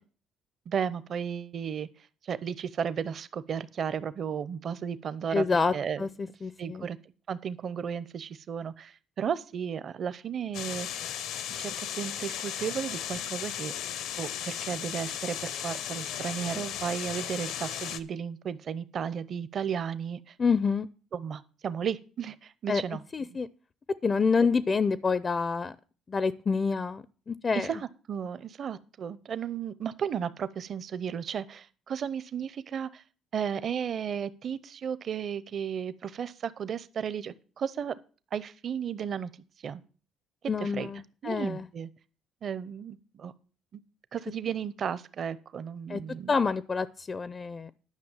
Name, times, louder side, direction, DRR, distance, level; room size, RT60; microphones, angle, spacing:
voice 1, 0.7-1.9 2.2-5.5 5.7-6.1 6.6-7.0 7.3-11.1 11.6-13.7 14.2-20.3 21.1-23.0 23.3-23.4 24.4-24.5 27.5-33.0 33.3-38.0 38.3-39.3 39.6-39.8 40.6-40.9 41.2-41.9 42.4-43.3 43.7-43.8 44.1-46.4, right 7 dB, 45° right, 16 dB, 0.6 m, -34 dB
voice 2, 5.3-5.7 6.0-6.8 20.4-20.9 22.7-22.8 23.1-23.5 24.0-25.7 26.1-27.7 40.5-41.6 45.9-46.0 46.3-47.7, left 5 dB, 30° left, 17 dB, 0.4 m, -27 dB
sound 1, 10.5-18.0, left 10 dB, 80° left, 0.8 m, -36 dB
10.5 x 5.9 x 7.2 m, 0.39 s
cardioid pair, 120°, 0 cm